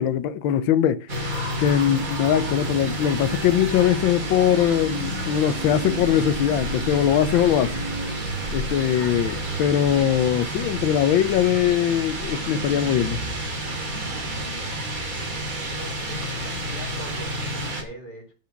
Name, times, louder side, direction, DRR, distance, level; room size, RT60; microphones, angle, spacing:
voice 1, 0.0-1.3 1.6-7.7 8.5-13.2, left 10 dB, 85° left, 1.4 m, -21 dB
sound 1, 1.1-17.8, right 1 dB, 45° right, 2.6 m, -30 dB
voice 2, 14.4-14.8 15.6-18.3, left 1 dB, 25° left, 2.4 m, -42 dB
10.5 x 4.8 x 7.0 m
omnidirectional pair, 2.1 m